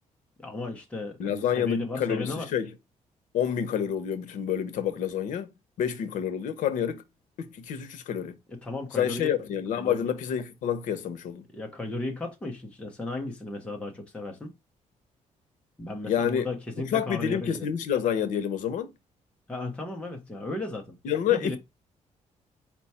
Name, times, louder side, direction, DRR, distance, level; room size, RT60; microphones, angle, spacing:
voice 1, 0.4-2.5 8.5-9.4 9.8-10.1 11.5-14.5 15.8-17.7 19.5-20.9 21.3-21.6, left 2 dB, 10° left, 0.7 m, -35 dB
voice 2, 1.2-2.7 3.3-5.5 5.8-7.0 7.5-8.4 9.0-11.5 16.0-16.5 16.9-18.9 21.0-21.6, left 9 dB, 85° left, 0.7 m, -28 dB
4.4 x 2.2 x 4.1 m
cardioid pair, 160°, 13 cm